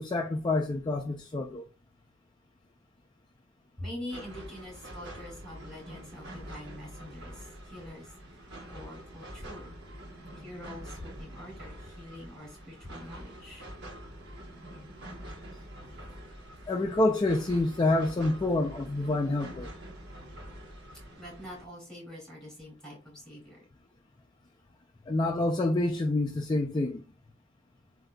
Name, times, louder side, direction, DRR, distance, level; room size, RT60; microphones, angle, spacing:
voice 1, 0.0-1.6 16.7-19.7 25.1-27.0, left 2 dB, 20° left, 0.3 m, -27 dB
voice 2, 3.8-8.1 8.7-9.7 10.4-13.7 21.2-23.7, left 1 dB, 5° left, 2.5 m, -44 dB
sound 1, 4.1-21.6, right 1 dB, 50° right, 1.1 m, -46 dB
7.4 x 2.6 x 2.2 m
head